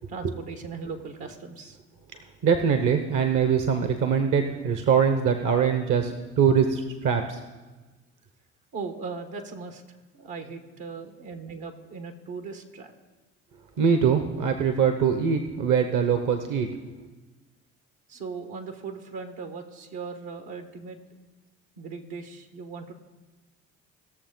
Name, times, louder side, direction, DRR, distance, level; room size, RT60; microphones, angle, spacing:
voice 1, 0.1-1.8 8.7-9.8 10.1-12.9 18.1-21.0 21.8-23.0, right 4 dB, 75° right, 7 dB, 1.4 m, -38 dB
voice 2, 2.4-7.4 13.8-16.7, right 6 dB, 60° right, 7 dB, 1.0 m, -23 dB
18.5 x 6.8 x 3.9 m, 1.2 s
hypercardioid pair, 60°, 36 cm